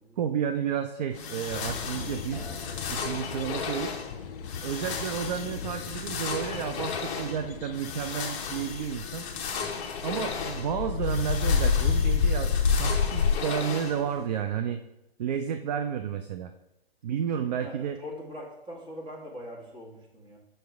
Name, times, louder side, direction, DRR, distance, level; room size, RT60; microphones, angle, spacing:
voice 1, 0.2-2.5 2.9-3.9 4.6-9.2 10.0-14.8 15.2-16.5 17.0-18.0, right 8 dB, 45° right, 8 dB, 0.5 m, -31 dB
sound 1, 1.1-14.3, left 6 dB, 30° left, 0.8 m, -36 dB
sound 2, 1.5-13.4, left 6 dB, 60° left, 0.6 m, -30 dB
sound 3, 2.3-9.2, right 2 dB, 75° right, 2.8 m, -53 dB
voice 2, 17.5-20.4, left 1 dB, 15° right, -3 dB, 1.7 m, -42 dB
7.5 x 5.8 x 3.5 m, 0.93 s
figure-of-eight pair, 125°, 31 cm